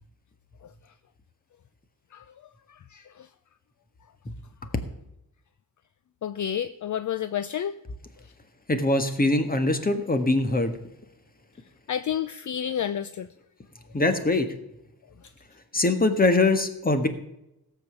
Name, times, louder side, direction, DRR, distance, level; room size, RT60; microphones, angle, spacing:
voice 1, 2.7-3.3 6.2-7.7 11.9-13.3, left 9 dB, 55° left, 14 dB, 0.5 m, -30 dB
voice 2, 8.7-10.7 13.9-14.5 15.7-17.1, left 2 dB, 25° left, 8 dB, 1.5 m, -22 dB
17.0 x 7.3 x 7.1 m, 0.88 s
wide cardioid pair, 125°, 36 cm